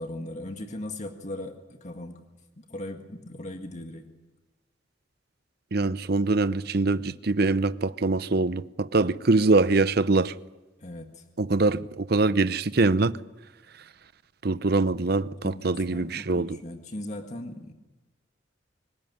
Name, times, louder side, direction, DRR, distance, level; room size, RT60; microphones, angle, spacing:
voice 1, 0.0-2.3 2.7-4.0 10.8-11.2 15.4-17.7, left 1 dB, 40° left, 1.9 m, -38 dB
voice 2, 5.7-10.3 11.4-13.2 14.4-16.6, right 3 dB, 60° right, 0.8 m, -23 dB
25.0 x 17.5 x 9.6 m
head